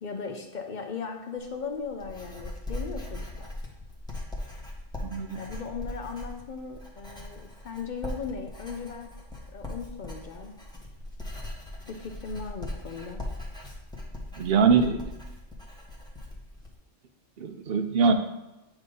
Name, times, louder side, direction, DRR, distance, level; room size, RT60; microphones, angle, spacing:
voice 1, 0.0-3.5 5.3-9.1 9.5-10.5 11.9-13.2, left 5 dB, 55° left, 4 dB, 0.6 m, -37 dB
Writing, 1.4-16.7, left 1 dB, 5° left, 1.0 m, -40 dB
voice 2, 5.0-5.4 14.4-15.0 17.4-18.1, right 5 dB, 60° right, 7 dB, 0.8 m, -23 dB
8.2 x 2.7 x 5.3 m, 1.0 s
omnidirectional pair, 1.2 m